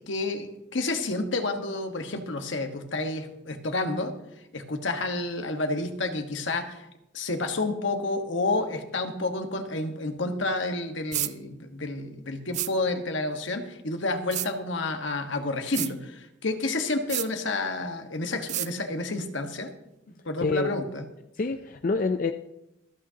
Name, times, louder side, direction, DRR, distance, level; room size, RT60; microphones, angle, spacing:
voice 1, 0.0-4.1 4.5-6.9 7.1-19.7 20.2-21.1, left 2 dB, 75° left, 5 dB, 1.4 m, -30 dB
sound 1, 11.1-11.3 12.5-12.7 14.3-14.5 15.7-15.9 17.1-17.3 18.5-18.7, right 14 dB, 35° right, 0.3 m, -29 dB
voice 2, 20.4-20.8 21.4-22.3, left 3 dB, 45° left, 8 dB, 0.4 m, -26 dB
26.0 x 8.7 x 2.9 m, 0.88 s
head